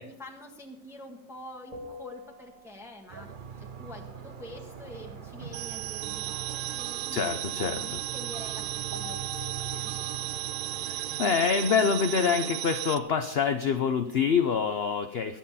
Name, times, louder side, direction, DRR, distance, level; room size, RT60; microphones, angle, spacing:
voice 1, 0.0-3.3 3.6-9.9, left 1 dB, ahead, 2 dB, 1.4 m, -46 dB
sound 1, 1.7-3.2 8.9-12.3, left 2 dB, 20° right, 2.2 m, -47 dB
sound 2, 3.1-11.2, right 6 dB, 40° right, 0.8 m, -42 dB
sound 3, 5.5-13.0, right 14 dB, 70° right, 1.0 m, -35 dB
voice 2, 7.1-8.0 10.8-15.4, left 6 dB, 55° left, 7 dB, 0.7 m, -26 dB
21.0 x 7.7 x 4.2 m, 0.82 s
omnidirectional pair, 1.9 m